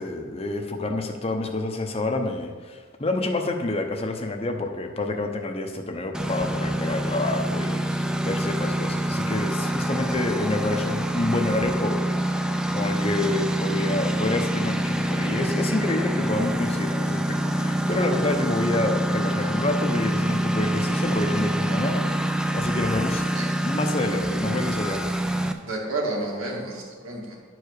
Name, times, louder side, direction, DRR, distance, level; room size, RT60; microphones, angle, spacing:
voice 1, 0.0-12.1 12.7-23.2 23.6-25.1, left 2 dB, 30° left, 4 dB, 0.7 m, -28 dB
Engine, 6.1-25.5, right 1 dB, 5° right, 0.3 m, -26 dB
voice 2, 23.2-23.7 25.6-27.4, right 2 dB, 80° right, -2 dB, 2.3 m, -31 dB
10.5 x 4.7 x 6.6 m, 1.5 s
head